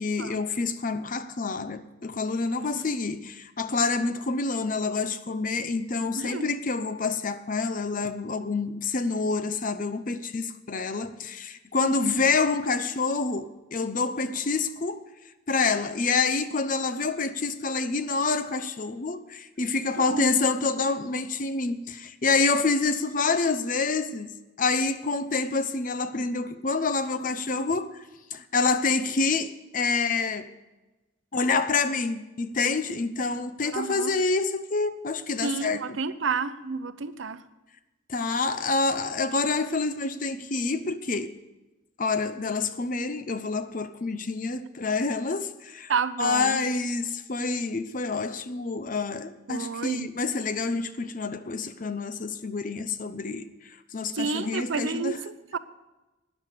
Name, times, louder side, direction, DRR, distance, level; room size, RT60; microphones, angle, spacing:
voice 1, 0.0-15.1 15.5-30.5 31.3-36.0 38.1-41.3 42.0-45.9 46.2-55.2, left 4 dB, 45° left, 0.7 m, -27 dB
voice 2, 6.2-6.5 11.8-12.1 19.8-20.3 33.7-34.1 35.4-37.4 45.9-46.6 49.5-50.1 54.1-55.2 55.5-55.6, right 5 dB, 80° right, 0.7 m, -30 dB
12.5 x 9.6 x 6.7 m
head